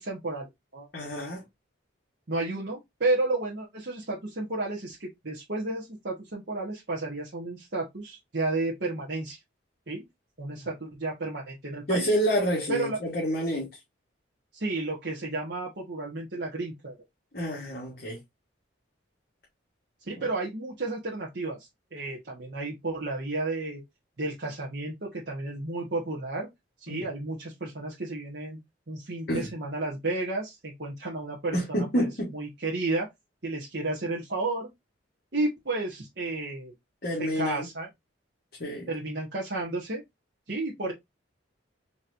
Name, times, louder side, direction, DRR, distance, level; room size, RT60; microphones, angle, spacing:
voice 1, 0.0-0.9 2.3-9.4 9.9-10.0 10.4-12.1 12.7-13.0 14.5-17.0 20.1-21.6 21.9-23.8 24.2-26.5 26.8-28.6 28.9-31.6 31.9-33.1 33.4-34.7 35.3-36.7 37.2-37.9 38.9-40.0 40.5-40.9, right 2 dB, 55° right, 1.2 m, -32 dB
voice 2, 0.9-1.4 11.9-13.7 17.3-18.2 20.2-20.3 26.9-27.0 29.3-29.5 31.5-32.3 37.0-37.7 38.6-38.8, equal, 50° left, 1.3 m, -28 dB
4.2 x 3.1 x 2.5 m
head